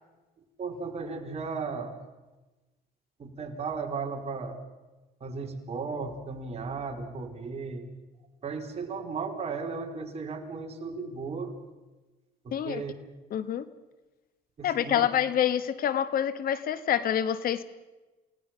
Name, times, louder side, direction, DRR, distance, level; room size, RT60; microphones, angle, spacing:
voice 1, 0.6-2.0 3.2-4.6 5.2-7.9 8.4-11.6 12.4-12.9 14.6-15.1, right 4 dB, 40° right, 3 dB, 3.8 m, -35 dB
voice 2, 12.5-12.8 13.3-13.6 14.6-17.6, left 10 dB, 60° left, 14 dB, 1.3 m, -27 dB
28.5 x 18.0 x 5.7 m, 1.1 s
cardioid pair, 110°, 17 cm